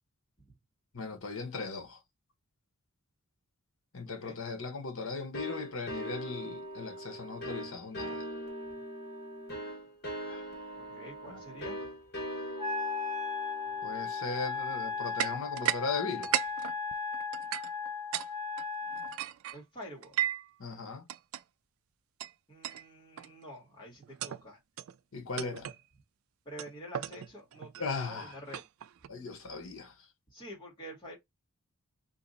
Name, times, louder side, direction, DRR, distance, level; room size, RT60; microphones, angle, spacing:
voice 1, 0.9-2.0 3.9-8.3 10.3-10.4 11.3-11.4 13.8-16.3 20.6-21.1 25.1-25.7 27.8-28.4 29.1-29.9, left 4 dB, 65° left, 1.0 m, -38 dB
sound 1, 5.3-15.8, equal, 50° left, 1.7 m, -42 dB
voice 2, 10.8-11.8 19.5-20.2 22.5-24.6 26.4-28.6 30.3-31.2, equal, 20° left, 1.7 m, -47 dB
Wind instrument woodwind instrument, 12.6-19.2, left 5 dB, 15° right, 1.0 m, -36 dB
sound 2, 15.2-15.8 16.1-18.3 18.6-20.5 21.1-21.4 22.2-22.3 22.6-22.9 23.2-23.5 24.0-24.4 24.8-25.0 25.4-25.8 26.6-29.1, right 11 dB, 75° right, 0.3 m, -36 dB
2.9 x 2.6 x 4.0 m
head